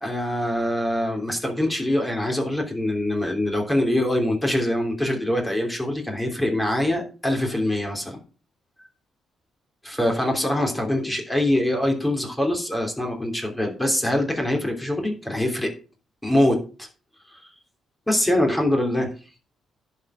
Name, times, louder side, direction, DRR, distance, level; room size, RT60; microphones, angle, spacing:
voice 1, 0.0-8.2 9.8-15.7 16.2-16.9 17.3-17.5 18.1-19.1, left 1 dB, 10° left, 2 dB, 3.1 m, -24 dB
11.0 x 4.8 x 7.5 m, 0.35 s
cardioid pair, 90°, 0 cm